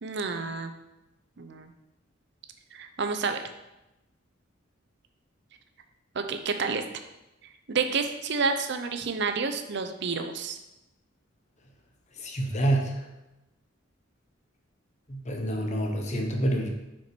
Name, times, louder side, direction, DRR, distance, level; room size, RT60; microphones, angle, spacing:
voice 1, 0.0-0.7 1.4-1.7 2.7-3.4 6.1-6.8 7.7-10.6, right 4 dB, 60° right, 7 dB, 0.6 m, -29 dB
voice 2, 12.2-13.0 15.1-16.7, right 1 dB, 35° left, 2 dB, 1.0 m, -27 dB
5.9 x 4.5 x 4.4 m, 0.96 s
head